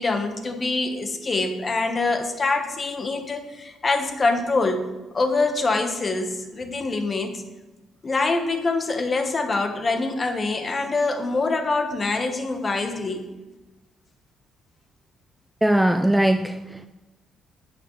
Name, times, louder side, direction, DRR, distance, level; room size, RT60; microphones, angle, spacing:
voice 1, 0.0-7.4 8.0-13.3, left 3 dB, 30° left, 6 dB, 1.1 m, -25 dB
voice 2, 15.6-16.9, right 1 dB, 5° right, 9 dB, 0.3 m, -20 dB
10.5 x 8.1 x 3.1 m, 1.1 s
cardioid pair, 120°, 0 cm